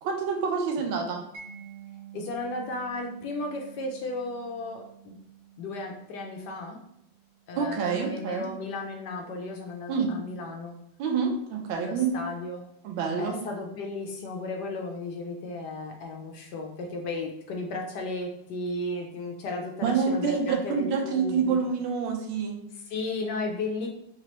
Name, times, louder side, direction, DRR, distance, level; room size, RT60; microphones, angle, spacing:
voice 1, 0.0-1.3 7.6-8.5 9.9-10.1 11.0-12.1 12.8-13.4 19.8-22.6, right 5 dB, 85° right, 2 dB, 1.5 m, -27 dB
Mallet percussion, 1.3-8.1, right 8 dB, 70° right, 1.1 m, -49 dB
voice 2, 2.1-5.1 5.6-6.8 7.5-10.7 11.7-12.6 13.2-21.6 22.7-23.9, left 2 dB, 75° left, 2 dB, 1.0 m, -34 dB
4.0 x 3.0 x 2.9 m, 0.80 s
omnidirectional pair, 2.1 m